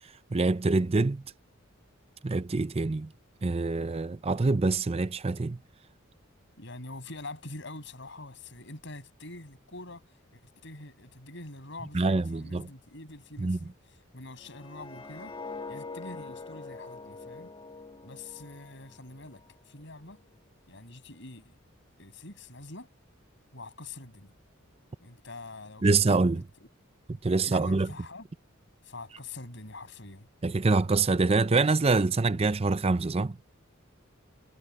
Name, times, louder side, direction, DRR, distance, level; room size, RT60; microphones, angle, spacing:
voice 1, 0.3-1.2 2.2-3.1 3.4-5.6 11.9-12.7 13.4-13.6 25.8-26.4 27.2-27.9 30.4-33.4, right 3 dB, 30° right, 0.5 m, -25 dB
voice 2, 6.6-10.0 10.3-15.4 15.7-17.5 18.0-20.2 20.7-21.6 22.0-22.9 23.5-24.3 25.0-26.7 27.4-28.3 28.8-30.3, left 2 dB, 60° left, 7.1 m, -45 dB
sound 1, 14.4-19.4 19.8-20.1, left 3 dB, 25° left, 1.6 m, -44 dB
head